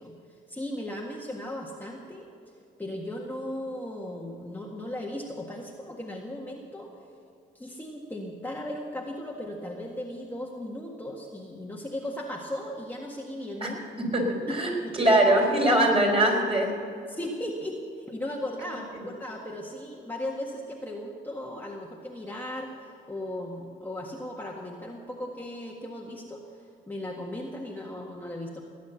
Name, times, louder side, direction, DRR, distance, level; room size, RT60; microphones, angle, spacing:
voice 1, 0.0-2.3 2.8-6.9 7.6-13.9 14.5-15.2 15.7-15.8 16.4-16.5 17.1-28.6, left 1 dB, 10° left, -2 dB, 1.7 m, -37 dB
voice 2, 14.0-16.7, right 1 dB, 30° right, 0 dB, 4.4 m, -22 dB
18.5 x 9.4 x 7.0 m, 2.4 s
cardioid pair, 90°, 20 cm